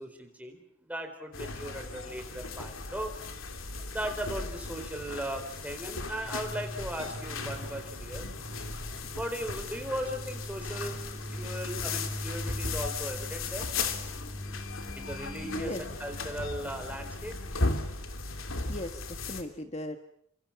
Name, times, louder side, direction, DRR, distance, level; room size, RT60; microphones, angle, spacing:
voice 1, 0.0-3.1 3.9-8.3 9.1-11.0 11.3-13.7 14.9-17.3, right 1 dB, 5° right, 5 dB, 4.1 m, -38 dB
sound 1, 1.3-19.4, left 3 dB, 75° left, 2.9 m, -37 dB
sound 2, 6.2-17.7, equal, 15° left, 2.9 m, -42 dB
voice 2, 15.4-15.8 18.7-20.0, left 1 dB, 30° left, 7 dB, 1.5 m, -37 dB
29.5 x 25.5 x 6.0 m, 0.66 s
head